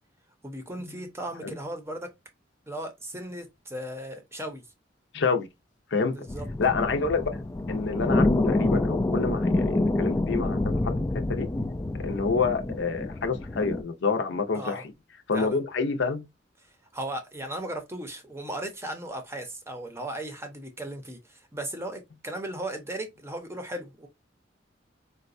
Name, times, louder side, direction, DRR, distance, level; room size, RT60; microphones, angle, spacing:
voice 1, 0.4-2.1 2.7-4.6 6.1-6.5 14.5-14.8 15.3-15.6 16.9-24.1, right 1 dB, 15° right, 0.7 m, -36 dB
voice 2, 5.1-5.5 5.9-6.2 6.6-7.3 7.7-11.0 11.3-11.5 12.0-14.8 15.3-16.3, left 4 dB, 65° left, 0.6 m, -28 dB
sound 1, 6.3-13.8, left 2 dB, 15° left, 0.3 m, -27 dB
3.9 x 2.1 x 2.5 m
head